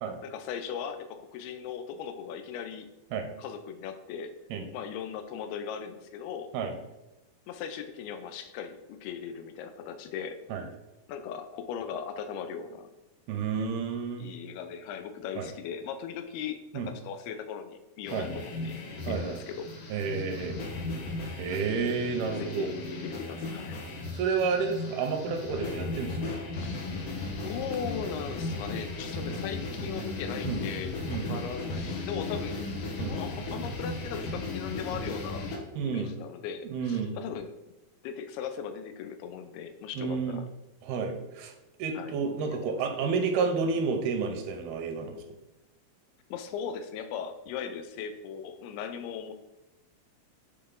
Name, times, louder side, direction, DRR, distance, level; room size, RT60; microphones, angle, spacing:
voice 1, 0.2-2.9 3.4-4.3 4.7-6.5 7.5-10.4 11.1-12.9 14.2-18.8 19.1-19.7 21.5-21.6 22.3-23.8 26.6-26.7 27.4-32.6 33.1-35.5 35.8-37.5 38.0-40.5 41.9-42.1 42.5-42.6 46.3-49.3, left 7 dB, 90° left, 9 dB, 2.6 m, -38 dB
voice 2, 13.3-14.3 15.4-15.5 16.7-16.9 18.1-18.3 19.0-19.4 19.9-20.6 21.4-22.7 24.1-26.4 30.4-30.6 31.1-31.4 33.0-33.2 35.7-36.2 36.6-37.2 40.0-40.4 40.8-41.5 41.8-45.2, right 5 dB, 85° right, 5 dB, 2.7 m, -30 dB
sound 1, 18.0-35.6, left 2 dB, 65° left, 2.6 m, -36 dB
7.9 x 4.2 x 3.8 m, 1.0 s
omnidirectional pair, 4.4 m